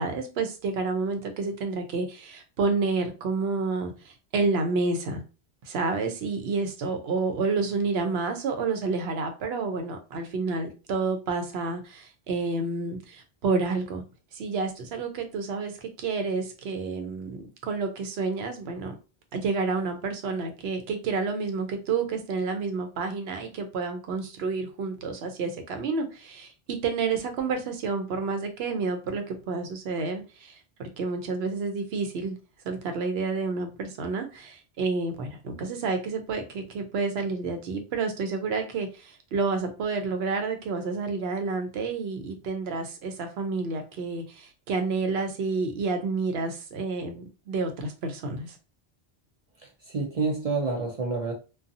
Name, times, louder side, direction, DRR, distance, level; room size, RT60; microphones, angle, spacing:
voice 1, 0.0-5.2 5.7-14.0 14.3-18.9 19.3-30.6 31.0-32.4 32.6-48.6, right 4 dB, 75° right, 0.8 m, -29 dB
voice 2, 49.6-51.3, right 4 dB, 50° right, 0.5 m, -28 dB
2.6 x 2.3 x 2.5 m
omnidirectional pair, 1.1 m